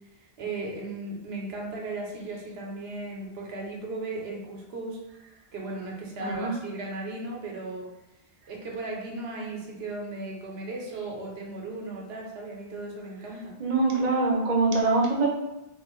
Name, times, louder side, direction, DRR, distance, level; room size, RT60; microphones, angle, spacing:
voice 1, 0.2-5.0 5.5-7.9 8.5-13.5, right 2 dB, 85° right, -1 dB, 0.9 m, -36 dB
voice 2, 6.2-6.5 13.6-15.3, right 3 dB, 45° right, -2 dB, 0.6 m, -24 dB
2.5 x 2.3 x 2.9 m, 0.99 s
omnidirectional pair, 1.0 m